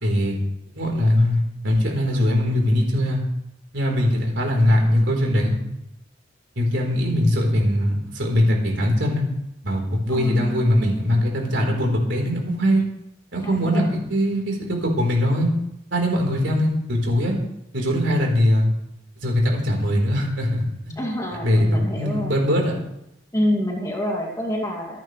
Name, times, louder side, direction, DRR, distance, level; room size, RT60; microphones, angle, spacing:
voice 1, 0.0-0.4 0.7-3.2 3.7-5.6 6.6-9.2 9.6-12.8 13.3-15.5 15.9-17.3 17.7-18.7 19.2-20.5 20.8-21.0 21.4-22.7, left 1 dB, 70° right, 0 dB, 4.2 m, -21 dB
voice 2, 10.1-11.7 13.4-13.9 21.0-22.3 23.3-25.0, equal, 15° left, -1 dB, 2.6 m, -28 dB
27.0 x 9.5 x 3.4 m, 0.81 s
head